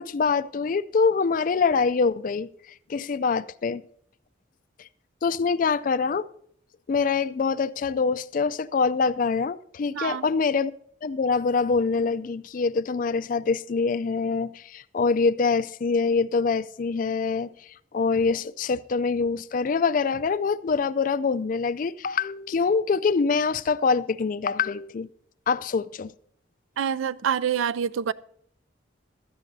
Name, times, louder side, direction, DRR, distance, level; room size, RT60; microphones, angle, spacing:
voice 1, 0.0-3.8 5.2-6.3 6.9-10.7 11.0-25.1 25.5-26.1, left 5 dB, 45° left, 0.3 m, -25 dB
voice 2, 9.9-10.3 26.8-28.1, right 8 dB, 90° right, 0.4 m, -26 dB
16.5 x 12.0 x 2.7 m
head